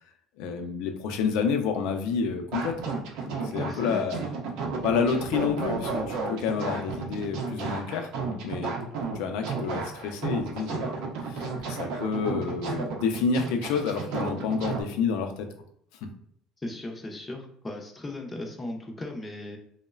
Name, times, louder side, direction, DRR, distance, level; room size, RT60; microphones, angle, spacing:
voice 1, 0.4-2.8 3.2-4.3 4.8-8.1 8.4-8.7 9.1-15.5, left 5 dB, 80° left, 6 dB, 0.4 m, -29 dB
sound 1, 2.5-14.8, right 4 dB, 70° right, 0.5 m, -33 dB
voice 2, 3.5-4.2 16.6-19.6, left 2 dB, 15° left, 2 dB, 0.4 m, -37 dB
3.0 x 2.0 x 2.3 m, 0.69 s
cardioid pair, 160°, 0 cm